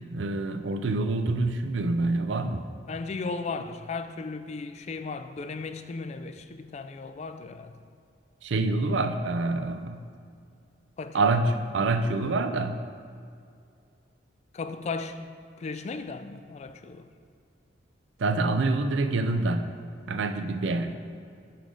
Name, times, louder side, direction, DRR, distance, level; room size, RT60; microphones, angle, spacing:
voice 1, 0.0-2.6 8.4-10.0 11.1-12.8 18.2-19.7 20.1-21.0, right 2 dB, 70° right, 0.4 m, -26 dB
voice 2, 2.9-7.7 11.0-11.4 14.5-17.1, left 4 dB, 35° left, 0.3 m, -36 dB
5.8 x 4.8 x 5.1 m
head